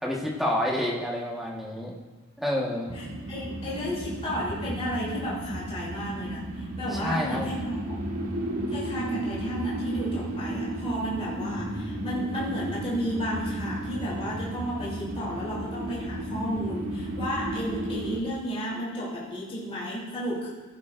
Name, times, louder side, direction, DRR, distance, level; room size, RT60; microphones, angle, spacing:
voice 1, 0.0-1.9 2.4-2.9 6.9-7.5, left 1 dB, ahead, -3 dB, 1.5 m, -28 dB
voice 2, 2.9-8.0 8.7-20.5, equal, 30° left, -7 dB, 3.2 m, -33 dB
sound 1, 2.9-18.2, right 1 dB, 80° right, 1.7 m, -33 dB
16.0 x 10.5 x 2.6 m, 1.3 s
head